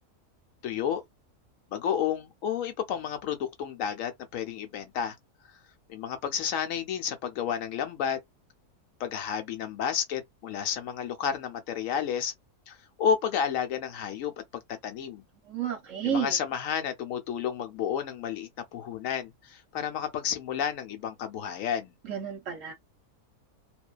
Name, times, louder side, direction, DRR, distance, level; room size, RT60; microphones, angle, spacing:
voice 1, 0.6-1.0 1.7-5.2 5.9-8.2 9.0-12.3 12.7-15.2 16.0-21.9, left 8 dB, 70° left, 0.9 m, -31 dB
voice 2, 15.5-16.4 22.0-22.7, right 8 dB, 65° right, 0.9 m, -31 dB
2.5 x 2.2 x 2.2 m
omnidirectional pair, 1.6 m